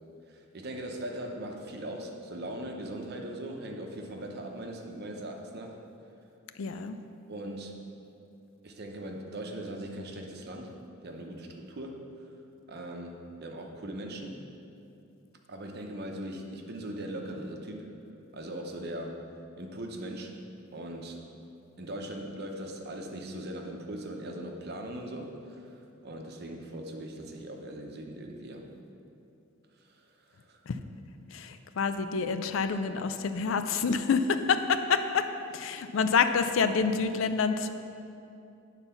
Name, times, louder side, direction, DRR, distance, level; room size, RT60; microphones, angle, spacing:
voice 1, 0.3-5.8 7.3-7.8 8.6-10.8 11.0-12.3 12.7-14.4 15.5-18.0 18.3-19.3 19.6-20.4 20.7-21.2 21.8-28.7 29.9-30.0 30.3-30.6, right 1 dB, 50° right, 2 dB, 0.8 m, -40 dB
voice 2, 6.6-7.0 30.7-30.8 31.3-35.3 35.5-37.7, left 5 dB, 70° left, 9 dB, 0.4 m, -27 dB
8.9 x 4.1 x 5.7 m, 2.7 s
head